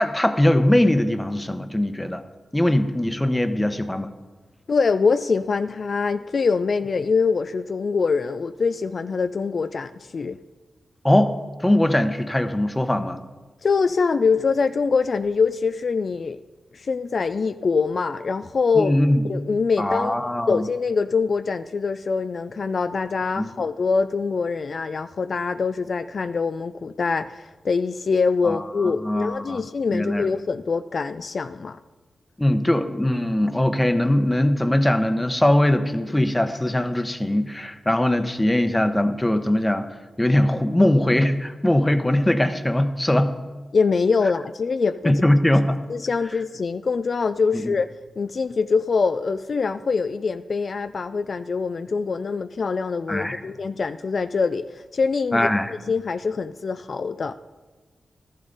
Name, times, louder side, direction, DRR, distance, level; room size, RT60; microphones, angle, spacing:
voice 1, 0.0-2.2 2.5-4.1 11.0-11.4 11.6-13.2 18.8-19.2 19.8-20.7 23.4-23.5 28.4-28.6 29.0-29.6 29.9-30.3 32.4-39.9 40.2-43.3 45.0-45.8 47.6-47.7 53.1-53.4 55.3-55.7, left 1 dB, 15° left, 9 dB, 0.9 m, -21 dB
voice 2, 4.7-10.4 13.6-16.4 16.7-19.0 19.3-20.1 20.5-31.8 43.7-45.1 45.9-47.9 48.2-57.3, left 4 dB, 60° left, 10 dB, 0.3 m, -24 dB
13.0 x 11.0 x 4.0 m, 1.2 s
cardioid pair, 65°, 0 cm